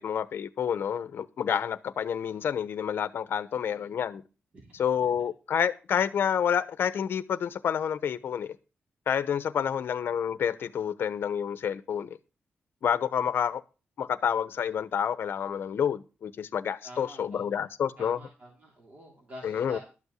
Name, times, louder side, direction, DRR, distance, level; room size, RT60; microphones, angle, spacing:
voice 1, 0.0-4.2 4.8-8.6 9.1-12.2 12.8-13.6 14.0-18.2 19.4-19.8, left 8 dB, 65° left, 0.9 m, -29 dB
voice 2, 3.6-3.9 4.5-5.1 16.8-17.6 18.0-19.8, equal, 35° right, 3.1 m, -48 dB
12.5 x 5.3 x 8.2 m
wide cardioid pair, 170°, 4 cm